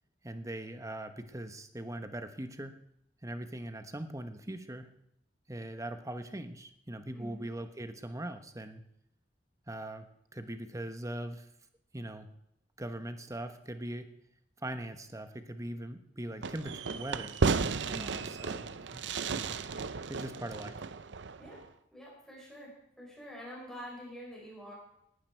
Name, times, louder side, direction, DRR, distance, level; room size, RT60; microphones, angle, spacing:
voice 1, 0.2-2.8 3.2-4.9 5.5-8.8 9.7-10.1 10.3-11.5 11.9-12.3 12.8-14.1 14.6-17.3 17.9-19.0 19.3-19.5 20.1-20.8, right 1 dB, 20° right, 8 dB, 1.2 m, -41 dB
voice 2, 7.1-7.5 17.9-18.2 21.4-21.6 21.9-24.7, equal, 5° left, -4 dB, 4.9 m, -47 dB
Fireworks, 16.4-21.7, right 4 dB, 75° right, 0.7 m, -34 dB
18.5 x 12.0 x 4.6 m, 0.77 s
head